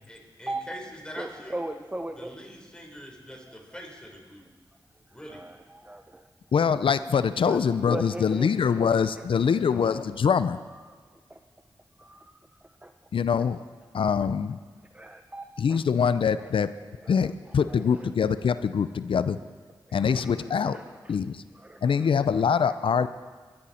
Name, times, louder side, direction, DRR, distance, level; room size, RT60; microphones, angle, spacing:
voice 1, 0.1-1.6 2.2-4.4 5.1-5.4, equal, 10° left, 0 dB, 4.2 m, -43 dB
voice 2, 1.2-2.3 5.1-6.2 7.4-7.6 7.9-10.0 10.7-11.4 12.0-12.9 14.2-14.3 14.9-15.8 16.4-16.5 16.9-18.1 20.0-21.2 21.5-22.3 22.6-23.1, right 1 dB, 15° right, 6 dB, 0.8 m, -40 dB
voice 3, 6.5-10.6 13.1-13.6 13.9-14.6 15.6-16.7 17.1-19.4 19.9-20.8 21.1-21.4 21.8-23.1, left 6 dB, 75° left, 13 dB, 0.5 m, -24 dB
22.0 x 11.0 x 4.3 m, 1.5 s
cardioid pair, 50°, 9 cm